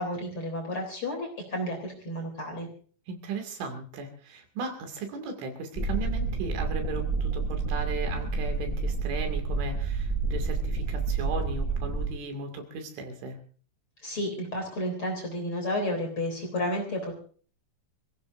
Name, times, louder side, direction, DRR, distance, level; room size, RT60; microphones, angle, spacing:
voice 1, 0.0-2.7 14.0-17.1, left 1 dB, 30° left, 0 dB, 3.7 m, -31 dB
voice 2, 3.1-13.4, right 4 dB, 75° right, 4 dB, 4.8 m, -36 dB
sound 1, 5.8-12.1, right 3 dB, 5° right, 6.2 m, -29 dB
27.0 x 16.0 x 2.6 m, 0.42 s
omnidirectional pair, 5.5 m